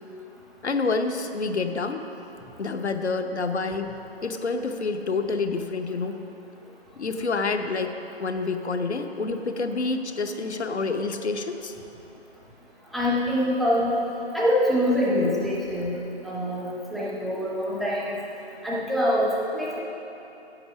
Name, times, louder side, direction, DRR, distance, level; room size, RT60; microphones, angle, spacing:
voice 1, 0.6-2.0 2.6-3.9 4.2-6.2 7.0-11.7, left 3 dB, 90° left, 7 dB, 0.9 m, -28 dB
voice 2, 12.9-14.0 14.3-16.0 16.2-18.2 18.6-19.8, equal, ahead, -6 dB, 0.4 m, -24 dB
8.6 x 7.9 x 6.3 m, 3.0 s
figure-of-eight pair, 165°, 33 cm